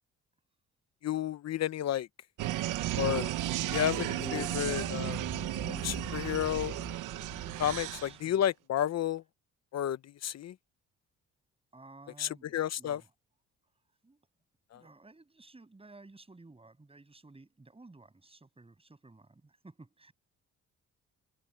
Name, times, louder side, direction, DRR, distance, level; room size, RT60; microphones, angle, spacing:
voice 1, 1.0-2.1 3.0-3.3 3.7-5.2 5.8-6.8 7.6-9.2 9.7-10.5 12.2-13.0 14.7-14.8, left 11 dB, 60° left, 0.9 m, -31 dB
sound 1, 2.4-8.1, right 15 dB, 85° right, 1.0 m, -34 dB
sound 2, 3.5-8.1, left 2 dB, 15° left, 1.5 m, -45 dB
voice 2, 8.0-8.4 11.7-13.1 14.0-14.3 14.7-20.1, right 3 dB, 20° right, 7.6 m, -55 dB
cardioid pair, 90°, 30 cm